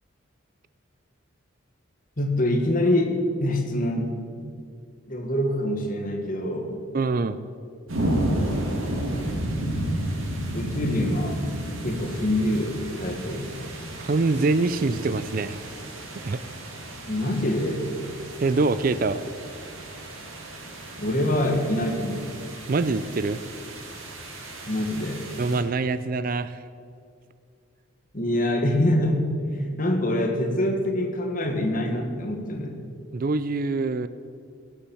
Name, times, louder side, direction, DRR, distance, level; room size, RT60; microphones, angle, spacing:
voice 1, 2.2-4.1 5.1-6.8 10.5-11.4 11.8-13.5 17.0-17.9 21.0-22.3 24.7-25.2 28.1-32.8, left 1 dB, 40° left, 3 dB, 1.7 m, -25 dB
voice 2, 6.9-7.4 14.0-15.6 16.2-16.4 18.4-19.2 22.7-23.4 25.4-26.6 33.1-34.1, right 3 dB, 45° right, 14 dB, 0.4 m, -24 dB
sound 1, 7.9-25.6, right 1 dB, 85° right, 2.5 m, -32 dB
17.0 x 7.2 x 7.1 m, 2.3 s
head